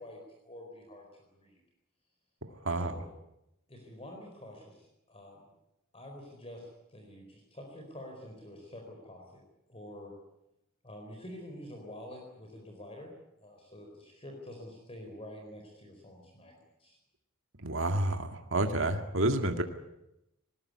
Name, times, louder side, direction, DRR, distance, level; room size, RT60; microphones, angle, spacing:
voice 1, 0.0-1.6 2.7-3.1 3.7-5.4 5.9-9.4 9.7-10.1 10.8-13.1 13.4-16.5 16.8-17.0, left 1 dB, 25° left, 2 dB, 4.4 m, -47 dB
voice 2, 2.6-3.0 17.6-19.6, right 1 dB, 65° right, 5 dB, 2.1 m, -29 dB
20.5 x 19.5 x 9.7 m, 0.86 s
head